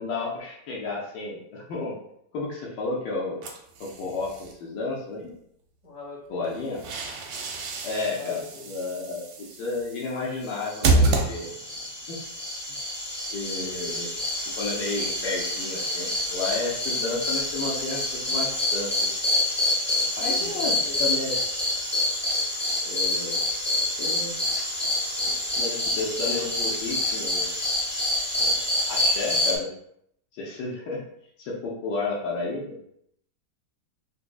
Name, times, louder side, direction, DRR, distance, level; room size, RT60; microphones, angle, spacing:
voice 1, 0.0-2.0 2.3-3.4 3.8-5.3 6.3-6.8 7.8-11.5 12.1-12.2 13.3-14.1 14.6-19.1 20.0-21.4 22.8-23.5 24.0-24.3 25.2-27.5 28.4-28.5 28.9-29.7 30.3-31.0 31.4-32.8, left 3 dB, 75° left, -5 dB, 1.3 m, -32 dB
sound 1, 3.4-4.5 6.4-11.8, right 3 dB, 70° right, 1.0 m, -28 dB
voice 2, 5.8-6.4 8.0-8.7 20.4-21.1, left 3 dB, 45° left, -5 dB, 1.3 m, -41 dB
sound 2, 10.7-29.6, left 1 dB, 15° left, 0.4 m, -27 dB
4.0 x 2.5 x 2.3 m, 0.73 s
omnidirectional pair, 1.9 m